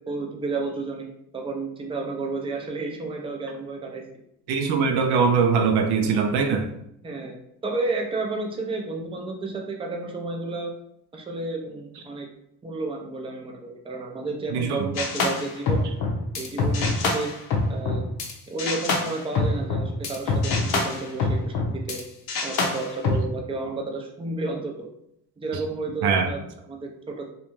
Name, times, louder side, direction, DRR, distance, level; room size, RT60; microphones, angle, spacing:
voice 1, 0.1-4.0 7.0-10.7 11.1-12.3 12.6-15.9 16.4-17.3 17.7-18.1 18.5-22.0 22.4-24.9 25.4-27.3, right 3 dB, 15° right, 1 dB, 0.5 m, -31 dB
voice 2, 4.5-6.7 14.5-14.9 26.0-26.3, right 5 dB, 75° right, 5 dB, 0.5 m, -22 dB
sound 1, 15.0-18.3 18.6-22.0 22.3-23.3, left 3 dB, 65° left, 0.7 m, -25 dB
2.5 x 2.2 x 3.0 m, 0.76 s
cardioid pair, 80°, 40 cm